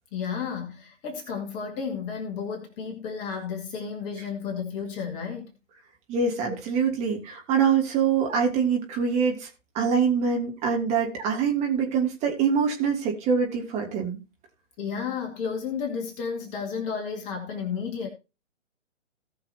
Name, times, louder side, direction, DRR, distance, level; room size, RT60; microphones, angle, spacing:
voice 1, 0.1-5.5 6.5-6.6 14.8-18.1, left 6 dB, 20° left, 2.1 m, -32 dB
voice 2, 6.1-9.5 9.7-14.2, right 6 dB, 15° right, 2.9 m, -24 dB
18.5 x 6.3 x 2.9 m
figure-of-eight pair, 135°, 38 cm